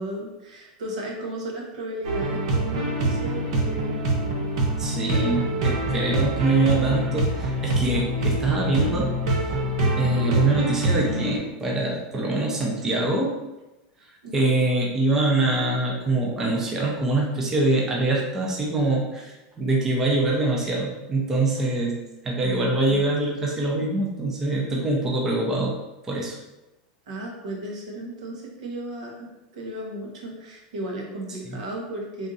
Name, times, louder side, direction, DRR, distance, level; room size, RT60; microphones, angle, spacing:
voice 1, 0.0-4.0 14.2-14.5 22.4-23.0 27.1-32.3, right 1 dB, 85° right, -1 dB, 1.2 m, -34 dB
sound 1, 2.0-11.4, right 1 dB, 55° right, 0.8 m, -25 dB
voice 2, 4.8-9.1 9.4-9.5 10.0-13.4 14.3-22.0 22.2-25.7 26.1-26.4, right 2 dB, 10° right, -2 dB, 0.5 m, -24 dB
3.6 x 2.6 x 3.9 m, 1.0 s
supercardioid pair, 180°, 4 cm